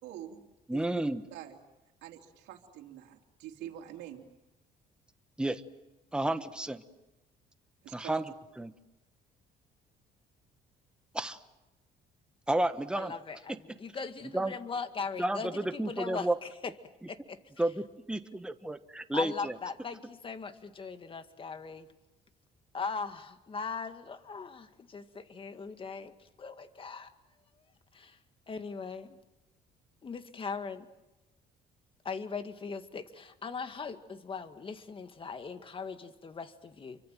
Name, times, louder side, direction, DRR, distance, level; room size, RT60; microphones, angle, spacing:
voice 1, 0.0-0.8 1.3-1.6 2.0-4.2 7.8-8.1, right 11 dB, 85° right, 1 dB, 3.2 m, -46 dB
voice 2, 0.7-1.2 5.4-5.6 6.1-6.8 7.9-8.7 11.1-11.4 12.5-13.1 14.3-14.5 15.2-16.3 17.6-19.5, right 1 dB, 5° right, 9 dB, 1.3 m, -31 dB
voice 3, 13.0-16.7 17.1-17.4 18.3-18.4 19.1-21.9 22.7-27.1 27.9-28.2 28.5-29.2 30.0-30.9 32.0-37.0, left 5 dB, 30° left, 9 dB, 2.0 m, -39 dB
29.0 x 24.5 x 7.6 m, 1.0 s
cardioid pair, 110°, 17 cm